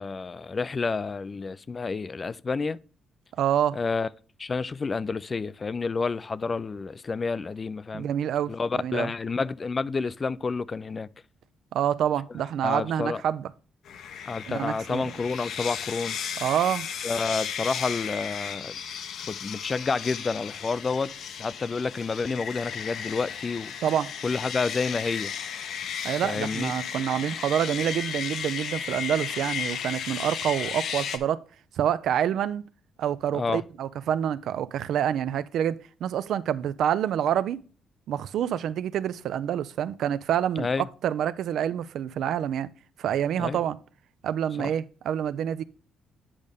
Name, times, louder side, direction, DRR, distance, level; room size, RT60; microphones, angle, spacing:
voice 1, 0.0-2.8 3.7-4.1 4.4-8.1 8.5-11.1 12.6-13.2 14.3-16.2 17.0-18.8 19.3-21.1 21.4-23.7 24.2-25.3 26.2-26.7 33.3-33.6 40.6-40.8 43.4-43.6 44.6-44.7, left 4 dB, 35° left, 0.3 m, -29 dB
voice 2, 3.4-3.8 7.9-9.1 11.7-13.5 14.5-15.1 16.4-16.9 23.8-24.1 26.0-31.4 31.8-32.6 33.0-37.6 38.1-40.7 41.0-42.7 43.0-43.8 44.2-45.6, right 9 dB, 75° right, 0.4 m, -27 dB
sound 1, 13.9-31.2, left 7 dB, 75° left, 0.7 m, -35 dB
8.4 x 5.2 x 3.5 m
cardioid pair, 90°, 0 cm